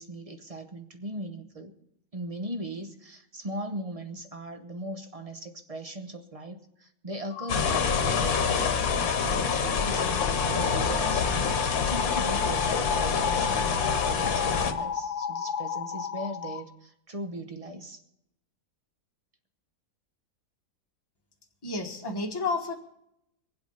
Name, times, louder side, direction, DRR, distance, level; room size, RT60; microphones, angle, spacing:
voice 1, 0.0-1.7 2.1-18.0, right 1 dB, 30° right, 8 dB, 0.9 m, -39 dB
sound 1, 7.3-16.6, left 7 dB, 80° left, 1.4 m, -33 dB
sound 2, 7.5-14.7, left 6 dB, 65° left, 1.5 m, -27 dB
voice 2, 21.6-22.7, left 3 dB, 15° left, 1 dB, 1.4 m, -30 dB
23.0 x 8.1 x 5.6 m, 0.81 s
omnidirectional pair, 1.6 m